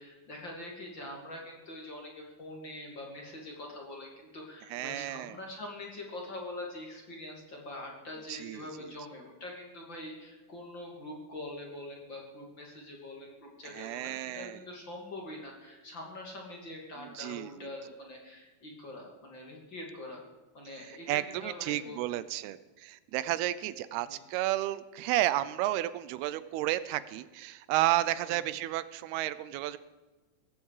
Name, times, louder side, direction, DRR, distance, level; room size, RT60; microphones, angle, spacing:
voice 1, 0.0-20.2 20.5-22.2 24.1-24.2 28.2-28.5, left 1 dB, 35° left, 0 dB, 2.8 m, -44 dB
voice 2, 4.7-5.4 8.3-8.9 13.7-14.6 17.0-17.7 20.9-29.8, right 15 dB, 85° right, 16 dB, 2.6 m, -32 dB
17.5 x 15.0 x 4.9 m, 1.2 s
omnidirectional pair, 4.6 m